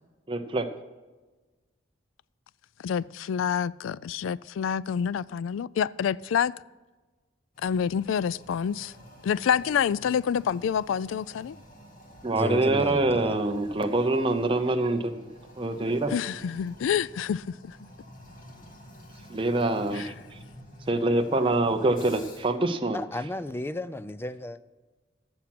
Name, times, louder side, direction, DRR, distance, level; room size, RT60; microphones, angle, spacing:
voice 1, 0.3-0.7 12.2-15.3 15.6-16.1 19.3-20.1 20.9-23.0, right 2 dB, 25° right, 0.6 m, -25 dB
voice 2, 2.8-6.5 7.6-8.9 9.2-11.6 16.1-17.8 19.9-20.1, left 8 dB, 90° left, 0.3 m, -27 dB
Toilet flush, 7.5-22.6, equal, 45° left, 2.0 m, -49 dB
voice 3, 12.4-13.4 22.9-24.6, left 2 dB, 10° left, 0.4 m, -33 dB
13.0 x 7.2 x 6.0 m
head